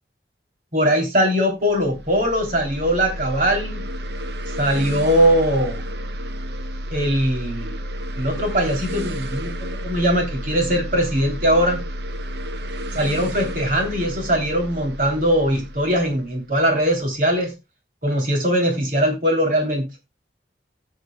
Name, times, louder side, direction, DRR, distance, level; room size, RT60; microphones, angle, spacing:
voice 1, 0.7-3.9 4.6-5.9 6.9-7.8 8.2-11.8 12.9-17.5 18.0-19.8, equal, 50° right, 2 dB, 3.2 m, -21 dB
sound 1, 1.7-17.1, equal, 70° right, 0.8 m, -31 dB
16.5 x 6.7 x 2.3 m, 0.24 s
head